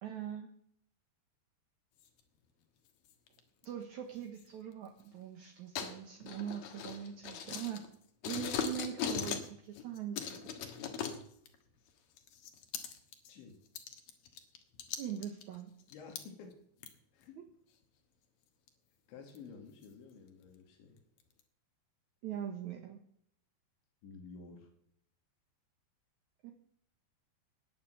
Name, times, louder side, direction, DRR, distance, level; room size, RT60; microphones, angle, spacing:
voice 1, 0.0-0.5 3.6-7.8 8.2-10.6 15.0-15.7 22.2-23.0 26.4-26.5, right 9 dB, 70° right, 3 dB, 1.8 m, -42 dB
sound 1, 2.0-2.2 3.1-3.7 4.4-4.5 5.8-8.0 8.2-9.5 9.8-11.6 12.2-13.3 13.7-16.2 16.8-16.9 17.5-17.6 18.7-18.8 19.4-19.5 19.8-19.9 20.5-20.6 21.0-21.4, left 7 dB, 65° left, 2.9 m, -39 dB
voice 2, 15.9-16.6 17.1-17.4 19.1-21.0 24.0-24.7, left 5 dB, 85° left, 2 dB, 4.7 m, -52 dB
19.5 x 6.7 x 7.8 m, 0.70 s
omnidirectional pair, 5.0 m